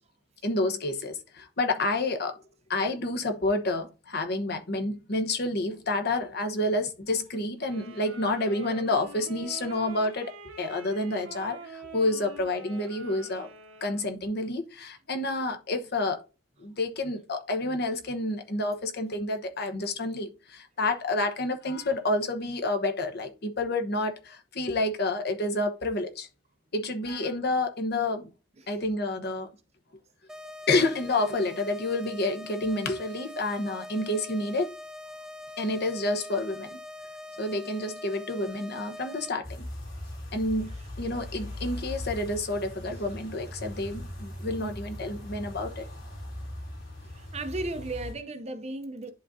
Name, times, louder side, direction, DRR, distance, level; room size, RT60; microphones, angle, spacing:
voice 1, 0.4-2.4 2.7-10.3 10.6-13.5 13.8-16.2 16.6-26.3 26.7-28.3 28.7-29.5 30.7-34.7 35.6-36.8 37.4-39.7 40.3-40.7 41.0-45.9, left 2 dB, 55° left, 1.0 m, -29 dB
sound 1, 7.6-14.2, right 3 dB, 75° right, 1.3 m, -45 dB
sound 2, 30.3-39.3, left 2 dB, 5° right, 0.3 m, -43 dB
sound 3, 39.4-48.1, left 1 dB, 75° left, 3.2 m, -39 dB
voice 2, 47.1-49.1, right 2 dB, 35° right, 0.6 m, -35 dB
11.0 x 3.7 x 2.7 m
head